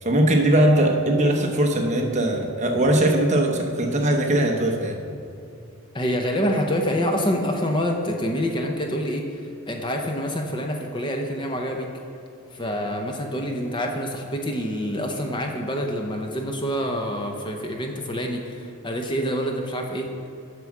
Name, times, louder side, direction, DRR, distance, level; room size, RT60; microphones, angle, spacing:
voice 1, 0.0-5.0, right 1 dB, 30° right, 2 dB, 0.9 m, -20 dB
voice 2, 5.9-11.9 12.5-20.1, equal, 20° left, 2 dB, 0.7 m, -26 dB
7.9 x 6.1 x 7.1 m, 2.6 s
head